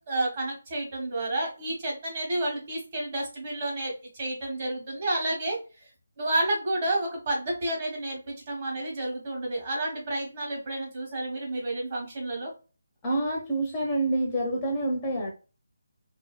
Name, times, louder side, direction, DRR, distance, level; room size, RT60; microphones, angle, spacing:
voice 1, 0.1-3.9 4.2-5.6 6.2-12.5, right 1 dB, 30° right, -2 dB, 1.2 m, -30 dB
voice 2, 13.0-15.3, right 1 dB, 15° left, -2 dB, 0.5 m, -27 dB
2.6 x 2.5 x 2.3 m, 0.33 s
hypercardioid pair, 170°, 0 cm